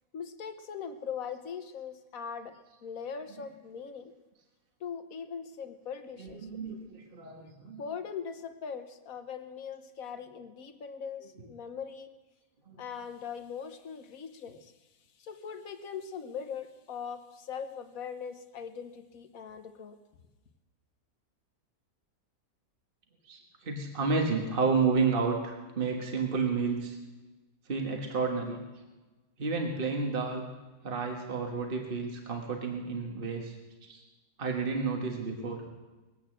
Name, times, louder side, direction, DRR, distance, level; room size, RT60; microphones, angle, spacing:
voice 1, 0.1-4.1 4.8-6.5 7.8-12.1 12.8-14.7 15.2-20.0, left 7 dB, 70° left, 9 dB, 1.5 m, -40 dB
voice 2, 6.2-7.8 12.7-12.8 23.2-27.0 27.7-28.6 29.4-30.5 30.8-33.6 33.8-34.0 34.4-35.6, right 4 dB, 40° right, 2 dB, 1.7 m, -31 dB
21.0 x 8.6 x 7.6 m, 1.2 s
omnidirectional pair, 1.6 m